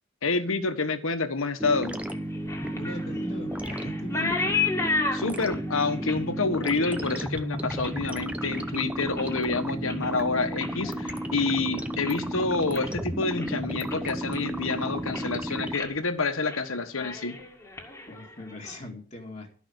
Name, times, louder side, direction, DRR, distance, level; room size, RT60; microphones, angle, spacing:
voice 1, 0.2-2.0 5.1-17.4, left 3 dB, 80° left, 9 dB, 1.4 m, -28 dB
sound 1, 1.6-15.8, right 1 dB, 5° right, 0.7 m, -33 dB
sound 2, 2.1-8.7 9.1-9.5 9.8-12.3 12.6-13.0 13.4-13.5 13.9-14.7 15.0-15.4 15.7-15.9 16.3-16.6 16.9-18.8, left 4 dB, 15° left, 2.0 m, -34 dB
voice 2, 2.7-4.6 18.1-19.5, left 1 dB, 35° left, 0 dB, 2.1 m, -39 dB
13.5 x 5.9 x 8.0 m, 0.42 s
head